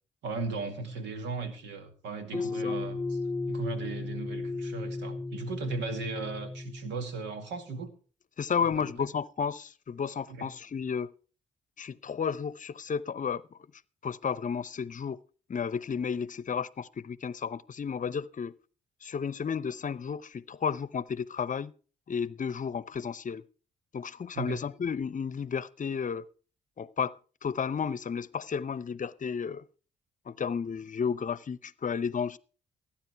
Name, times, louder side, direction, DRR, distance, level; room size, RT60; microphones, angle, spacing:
voice 1, 0.2-3.2 3.5-7.9 8.6-9.1 10.3-10.5 24.4-24.6, right 4 dB, 80° right, 2.3 m, -37 dB
voice 2, 2.3-2.8 8.4-11.1 11.8-13.6 14.0-15.2 15.5-18.5 19.0-21.7 22.1-23.4 23.9-26.2 26.8-29.6 30.3-32.4, left 6 dB, 45° left, 0.8 m, -32 dB
sound 1, 2.3-7.5, left 3 dB, 15° left, 0.6 m, -35 dB
15.0 x 10.0 x 4.6 m
hypercardioid pair, 45°, 18 cm